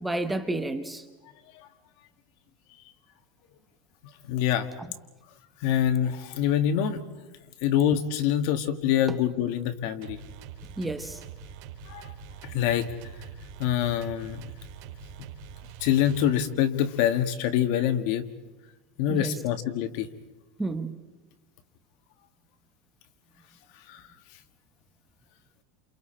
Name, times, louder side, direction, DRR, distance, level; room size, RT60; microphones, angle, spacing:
voice 1, 0.0-1.0 4.8-4.9 9.1-9.2 10.8-11.2 19.1-19.3 20.6-20.9, right 2 dB, 5° right, 8 dB, 1.0 m, -31 dB
voice 2, 4.2-4.7 5.6-7.0 7.6-10.2 11.9-12.1 12.4-12.9 13.6-14.4 15.8-18.3 19.0-20.1 23.9-24.0, left 10 dB, 55° left, 8 dB, 1.6 m, -25 dB
sound 1, 10.0-16.7, right 7 dB, 55° right, 3.5 m, -44 dB
29.5 x 28.5 x 4.4 m, 1.1 s
supercardioid pair, 165°, 0 cm